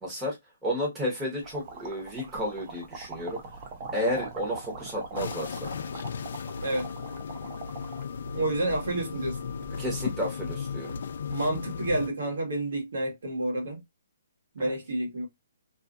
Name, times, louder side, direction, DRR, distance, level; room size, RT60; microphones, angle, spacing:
voice 1, 0.0-3.4 3.9-5.7 9.8-10.9 14.6-14.7, equal, 10° right, 1.0 m, -32 dB
sound 1, 1.4-10.0, right 4 dB, 25° right, 0.7 m, -43 dB
sound 2, 5.2-12.1, left 6 dB, 60° left, 0.4 m, -35 dB
voice 2, 8.3-9.4 11.3-13.8 14.5-15.3, right 1 dB, 75° right, 1.5 m, -29 dB
2.7 x 2.4 x 2.4 m
hypercardioid pair, 170°, 0 cm